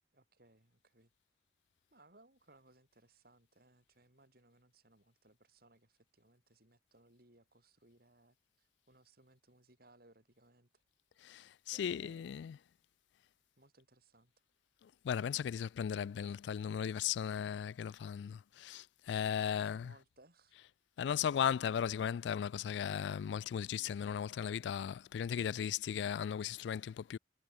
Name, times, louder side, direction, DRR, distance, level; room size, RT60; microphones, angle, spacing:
voice 1, 0.1-1.1 1.9-10.8 11.7-12.3 13.6-14.3 19.3-20.6, right 2 dB, 55° right, 7.7 m, -66 dB
voice 2, 11.2-12.6 14.8-20.0 20.5-20.6 21.0-27.2, left 8 dB, 70° left, 0.3 m, -36 dB
head